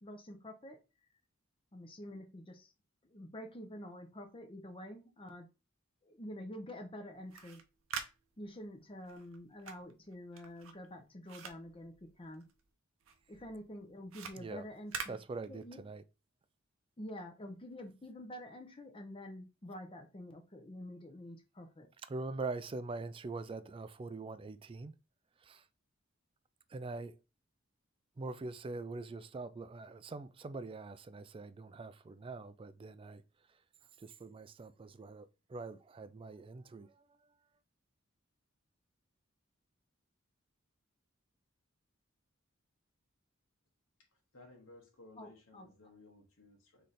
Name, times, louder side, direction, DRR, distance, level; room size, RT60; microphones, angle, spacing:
voice 1, 0.0-0.8 1.7-2.7 3.1-5.5 6.1-7.6 8.4-12.5 13.3-15.2 15.5-15.8 17.0-21.9 45.2-45.7, left 1 dB, 25° left, 0.7 m, -48 dB
sound 1, 7.2-12.7 13.0-15.9, right 6 dB, 90° right, 0.7 m, -47 dB
voice 2, 15.1-16.0 22.1-24.9 25.4-25.6 26.7-27.1 28.2-33.2 34.0-36.9, right 3 dB, 25° right, 0.3 m, -43 dB
voice 3, 44.0-46.9, left 2 dB, 85° left, 1.4 m, -58 dB
3.8 x 3.2 x 4.1 m
head